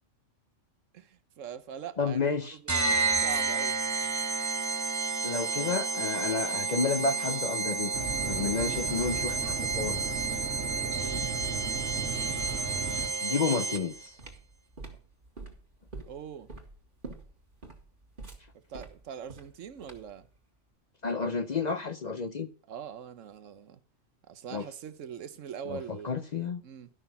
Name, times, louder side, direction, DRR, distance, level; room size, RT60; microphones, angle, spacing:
voice 1, 0.9-3.8 10.7-11.3 16.1-16.5 18.5-20.3 22.7-23.8 24.3-26.1 26.6-26.9, right 8 dB, 85° right, 1.2 m, -43 dB
voice 2, 2.0-2.6 5.2-10.2 13.2-14.2 21.0-22.5 24.5-24.7 25.7-26.6, left 4 dB, 45° left, 0.6 m, -31 dB
sound 1, 2.7-14.1, right 4 dB, 20° right, 0.5 m, -31 dB
sound 2, 7.9-13.1, right 4 dB, 70° right, 1.6 m, -36 dB
sound 3, 13.7-20.2, right 3 dB, 45° right, 2.1 m, -46 dB
12.5 x 6.1 x 5.5 m
omnidirectional pair, 1.3 m